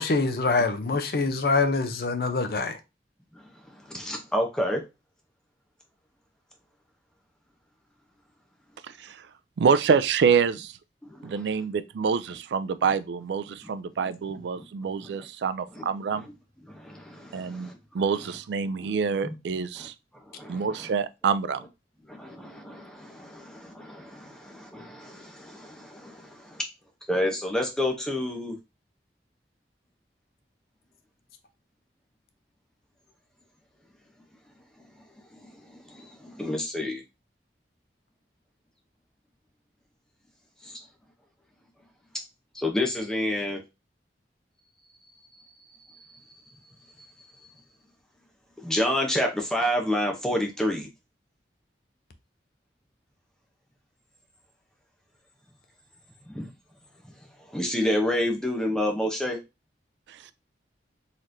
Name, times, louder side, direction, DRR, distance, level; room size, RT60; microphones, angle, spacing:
voice 1, 0.0-2.8, left 3 dB, 55° left, 0.6 m, -25 dB
voice 2, 3.8-4.8 11.0-11.5 14.3-14.6 15.7-15.8 16.1-16.2 16.7-17.8 18.8-18.9 19.2-19.3 19.8-19.9 20.3-20.9 22.1-26.6 27.1-28.6 35.3-37.0 40.6-40.8 42.5-43.6 48.6-50.9 56.3-56.5 57.5-59.4, left 1 dB, 5° left, 0.7 m, -29 dB
voice 3, 9.6-10.7 11.2-16.2 17.3-17.7 17.9-19.9 20.5-21.6, right 6 dB, 80° right, 0.3 m, -26 dB
4.1 x 3.0 x 2.6 m
head